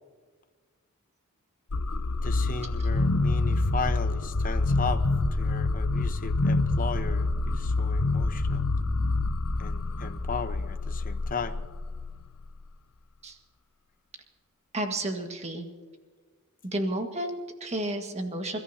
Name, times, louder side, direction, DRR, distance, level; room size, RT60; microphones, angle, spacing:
sound 1, 1.7-12.6, left 2 dB, 90° left, 0.8 m, -27 dB
voice 1, 2.2-5.0 5.3-8.7 9.6-11.6, left 4 dB, 40° left, 8 dB, 1.0 m, -36 dB
voice 2, 14.7-15.7 16.6-18.6, right 1 dB, 30° right, 5 dB, 1.7 m, -31 dB
28.0 x 14.0 x 2.8 m, 1.5 s
head